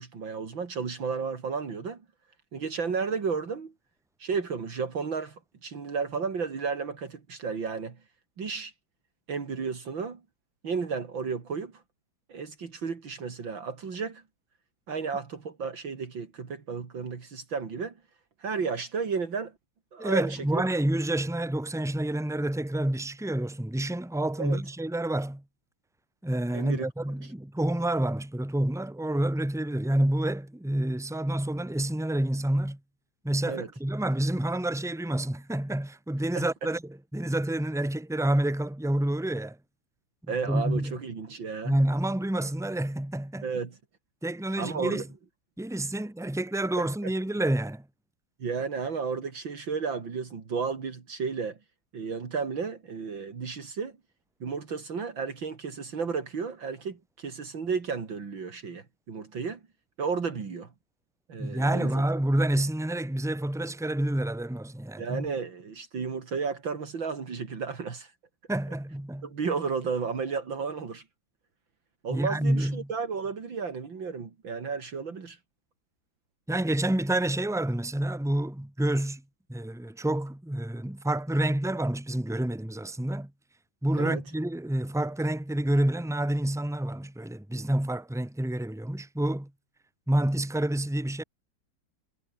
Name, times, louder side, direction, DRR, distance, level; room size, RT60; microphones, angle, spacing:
voice 1, 0.0-2.0 2.5-3.7 4.2-8.0 8.4-8.7 9.3-10.2 10.6-11.8 12.3-14.2 14.9-17.9 18.4-19.5 19.9-20.7 24.4-24.6 26.5-26.9 27.2-27.3 33.5-33.7 36.3-36.7 40.3-41.8 43.4-43.8 44.6-45.0 46.8-47.1 48.4-51.6 51.9-54.0 54.4-59.6 60.0-60.7 61.3-62.0 65.0-68.1 69.2-71.0 72.0-75.4 84.0-84.2, right 5 dB, 75° right, 3.5 m, -33 dB
voice 2, 20.0-25.4 26.2-32.8 33.2-36.8 37.1-39.6 40.5-41.0 41.6-43.5 44.2-45.0 45.6-47.8 61.4-65.3 68.5-69.3 72.1-72.9 76.5-79.2 79.5-83.3 83.8-89.5 90.1-91.2, right 1 dB, 5° right, 0.3 m, -28 dB
omnidirectional pair, 2.1 m